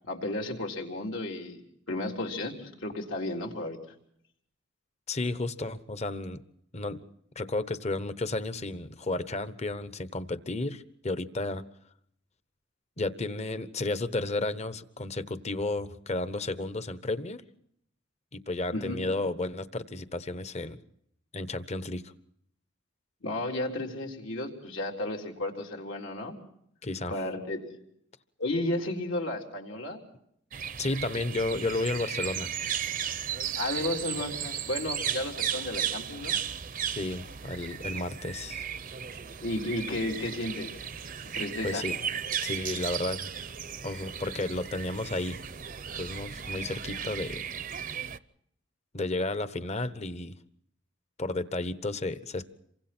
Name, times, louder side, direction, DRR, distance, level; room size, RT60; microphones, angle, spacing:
voice 1, 0.0-3.8 18.7-19.0 23.2-26.3 27.1-27.7 28.4-30.0 33.6-36.4 39.4-40.7 41.3-41.8, left 1 dB, 75° left, 0 dB, 3.9 m, -33 dB
voice 2, 5.1-6.4 6.7-7.0 7.4-11.6 13.0-17.4 18.3-20.8 21.3-22.1 26.8-27.1 30.8-32.5 36.8-38.6 41.6-42.0 42.4-43.2 43.8-45.4 45.9-47.4 48.9-50.3 51.2-52.5, left 2 dB, 35° left, 12 dB, 1.1 m, -32 dB
sound 1, 30.5-48.2, right 8 dB, 45° right, 0.7 m, -35 dB
28.0 x 24.5 x 4.4 m, 0.70 s
head